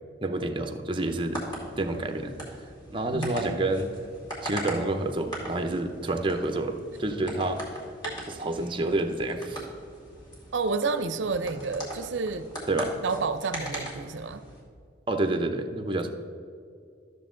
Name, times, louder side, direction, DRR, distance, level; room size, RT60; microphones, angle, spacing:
voice 1, 0.2-1.4 1.8-2.3 2.9-3.9 4.4-7.6 8.4-9.6 12.7-12.9 15.1-16.1, right 2 dB, 25° right, 6 dB, 0.7 m, -28 dB
sound 1, 1.0-14.6, equal, 25° left, 2.4 m, -40 dB
voice 2, 3.1-3.8 10.5-12.5 13.0-14.4, right 4 dB, 70° right, 11 dB, 0.5 m, -30 dB
12.5 x 6.9 x 3.8 m, 2.3 s
head